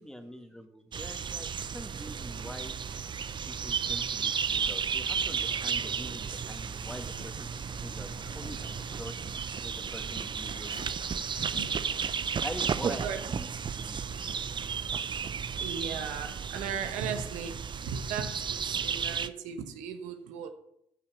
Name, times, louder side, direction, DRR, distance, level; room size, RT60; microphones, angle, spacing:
voice 1, 0.0-1.5 1.7-2.8 3.4-9.2 9.6-11.1 12.4-14.0, equal, 5° left, 1.9 m, -44 dB
sound 1, 0.9-19.3, right 6 dB, 40° right, 0.6 m, -33 dB
sound 2, 2.0-14.8, left 4 dB, 40° left, 1.7 m, -58 dB
sound 3, 6.6-12.7, equal, 70° left, 5.2 m, -50 dB
voice 2, 12.9-13.3 14.0-14.5 15.6-17.6 17.8-20.5, right 7 dB, 75° right, 1.2 m, -37 dB
14.0 x 5.7 x 6.7 m
hypercardioid pair, 60°, 13 cm